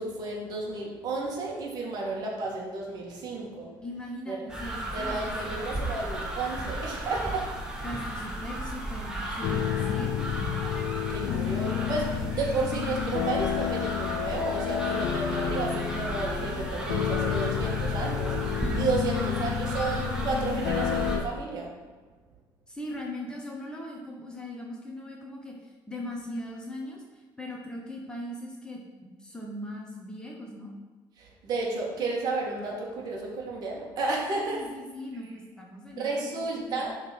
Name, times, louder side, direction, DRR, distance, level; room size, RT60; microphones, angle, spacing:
voice 1, 0.0-3.8 4.3-4.4 4.9-7.8 11.1-21.8 31.2-34.7 36.0-37.0, right 3 dB, 50° right, -1 dB, 1.9 m, -32 dB
voice 2, 3.8-5.7 7.8-10.7 11.1-11.4 12.1-12.8 19.1-19.5 22.7-30.7 34.3-36.9, left 1 dB, 10° left, -1 dB, 1.0 m, -40 dB
sound 1, 4.5-21.2, right 1 dB, 10° right, 1.3 m, -34 dB
sound 2, 9.4-21.2, left 11 dB, 75° left, 0.5 m, -30 dB
11.0 x 4.0 x 5.2 m, 1.3 s
cardioid pair, 175°, 8 cm